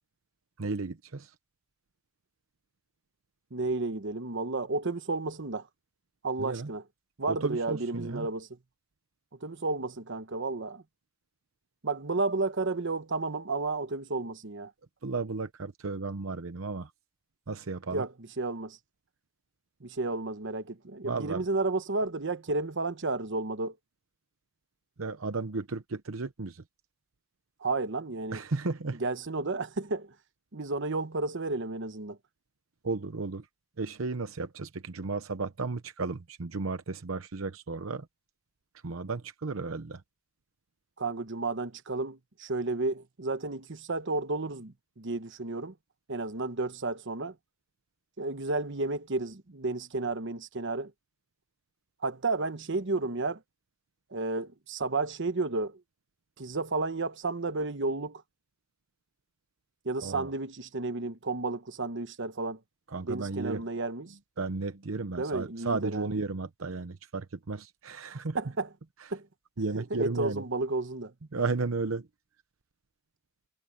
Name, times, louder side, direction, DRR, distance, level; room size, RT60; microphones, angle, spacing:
voice 1, 0.6-1.3 6.4-6.7 7.3-8.3 15.0-16.9 17.5-18.1 21.0-21.4 25.0-26.6 28.3-29.0 32.8-33.5 33.8-38.1 38.8-40.0 60.0-60.3 62.9-63.6 64.4-68.4 69.6-70.4 71.3-72.1, right 3 dB, 80° right, 0.8 m, -34 dB
voice 2, 3.5-5.7 6.2-6.8 7.2-8.5 9.4-10.8 11.8-14.7 17.9-18.8 19.8-23.7 27.6-28.4 29.0-30.1 30.5-32.2 41.0-45.7 46.1-47.3 48.2-50.9 52.0-53.4 54.1-55.8 56.4-58.2 59.8-62.6 63.0-64.1 65.2-66.1 68.3-68.7 69.1-69.2 69.7-71.1, right 3 dB, 60° right, 1.1 m, -32 dB
head